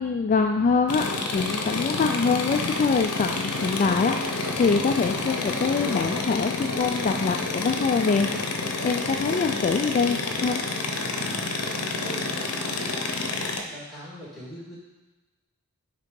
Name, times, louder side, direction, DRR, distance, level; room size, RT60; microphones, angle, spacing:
voice 1, 0.0-8.3 8.8-10.6, left 4 dB, 35° left, 3 dB, 0.3 m, -24 dB
sound 1, 0.9-13.6, left 3 dB, 75° left, 0.7 m, -29 dB
voice 2, 10.9-12.6 13.6-14.8, equal, ahead, -7 dB, 2.2 m, -42 dB
6.7 x 3.7 x 5.2 m, 1.1 s
head